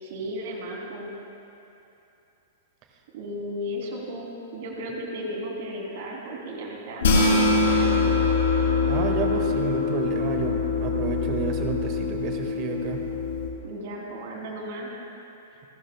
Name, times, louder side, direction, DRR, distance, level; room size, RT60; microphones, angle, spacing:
voice 1, 0.0-1.1 3.1-8.3 13.6-14.9, equal, 55° right, -1 dB, 2.8 m, -35 dB
sound 1, 7.0-13.5, left 4 dB, 65° left, 2.6 m, -23 dB
voice 2, 8.9-13.0, right 6 dB, 40° right, 4 dB, 1.5 m, -30 dB
29.0 x 12.5 x 2.2 m, 2.9 s
figure-of-eight pair, 105°, 0 cm